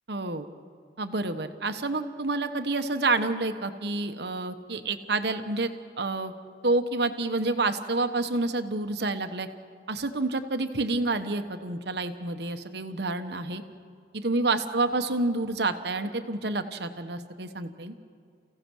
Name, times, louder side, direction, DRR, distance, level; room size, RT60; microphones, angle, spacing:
voice 1, 0.1-0.5 1.0-5.7 6.0-6.3 6.6-9.5 9.9-13.6 14.1-17.9, right 2 dB, 60° right, 8 dB, 1.2 m, -28 dB
29.5 x 16.0 x 6.3 m, 2.2 s
head